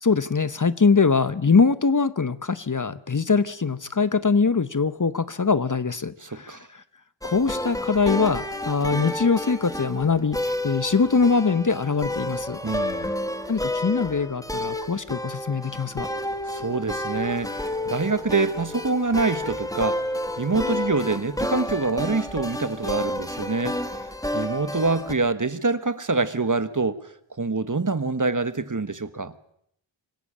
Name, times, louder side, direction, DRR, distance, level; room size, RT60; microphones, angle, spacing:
voice 1, 0.0-6.6 7.2-12.6 13.5-16.1, left 4 dB, 40° left, 0.9 m, -22 dB
voice 2, 6.2-6.7 12.6-13.1 16.5-20.1 20.4-24.0 24.3-27.0 27.4-29.3, right 3 dB, 40° right, 1.4 m, -25 dB
sound 1, 7.2-25.1, left 1 dB, 5° left, 1.7 m, -30 dB
25.5 x 14.0 x 8.7 m
wide cardioid pair, 45°, 47 cm